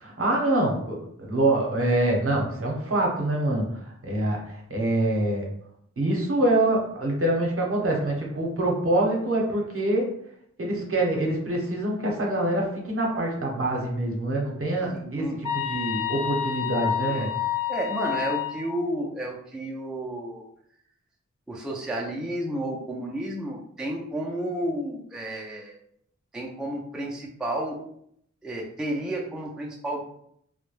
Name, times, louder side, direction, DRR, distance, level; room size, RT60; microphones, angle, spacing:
voice 1, 0.0-5.5 6.0-10.1 10.6-17.3, right 1 dB, 50° right, -1 dB, 0.7 m, -25 dB
voice 2, 14.9-15.4 17.1-17.4 17.7-20.4 21.5-25.8 26.3-27.8 28.4-30.0, right 1 dB, ahead, -2 dB, 0.4 m, -31 dB
sound 1, 15.4-18.7, left 10 dB, 85° left, 0.5 m, -29 dB
2.2 x 2.1 x 3.0 m, 0.70 s
wide cardioid pair, 70°, 29 cm